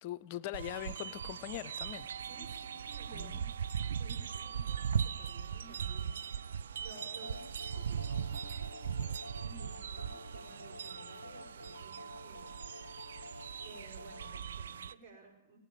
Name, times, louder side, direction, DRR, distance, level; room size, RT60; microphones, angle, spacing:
voice 1, 0.0-2.1 3.1-3.4, left 14 dB, 40° left, 0.6 m, -41 dB
sound 1, 0.5-14.9, right 7 dB, 65° right, 0.4 m, -39 dB
voice 2, 2.2-3.5 3.8-6.5 6.8-12.5 13.6-15.6, right 3 dB, 40° right, 5.9 m, -56 dB
sound 2, 6.9-14.4, left 2 dB, 85° left, 0.5 m, -51 dB
19.0 x 9.4 x 7.7 m
figure-of-eight pair, 105°, 0 cm